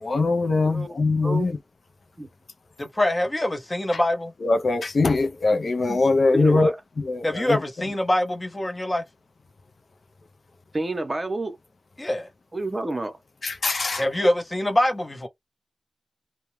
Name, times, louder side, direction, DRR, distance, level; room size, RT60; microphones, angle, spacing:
voice 1, 0.0-1.5 4.4-6.7 7.0-7.6 13.4-14.0, left 3 dB, 60° left, 0.4 m, -22 dB
voice 2, 0.6-1.0 1.2-1.5 2.2-2.3 6.3-6.8 10.7-11.6 12.5-13.2, right 2 dB, 30° right, 0.6 m, -29 dB
voice 3, 2.8-4.3 7.2-9.0 12.0-12.3 14.0-15.3, left 1 dB, 25° left, 0.7 m, -24 dB
2.3 x 2.0 x 2.9 m
wide cardioid pair, 70°, 0 cm